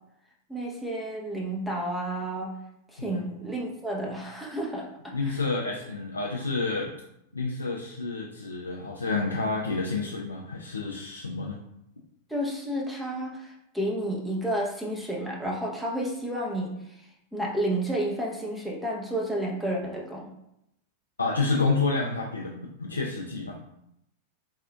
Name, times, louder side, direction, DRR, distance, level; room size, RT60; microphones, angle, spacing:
voice 1, 0.5-2.5 2.9-5.4 12.3-17.1 17.3-20.3, right 1 dB, ahead, -4 dB, 0.8 m, -31 dB
voice 2, 5.1-6.9 7.3-11.6 21.2-23.6, left 3 dB, 80° left, -1 dB, 0.4 m, -29 dB
4.2 x 3.5 x 2.3 m, 0.80 s
figure-of-eight pair, 90°, 0 cm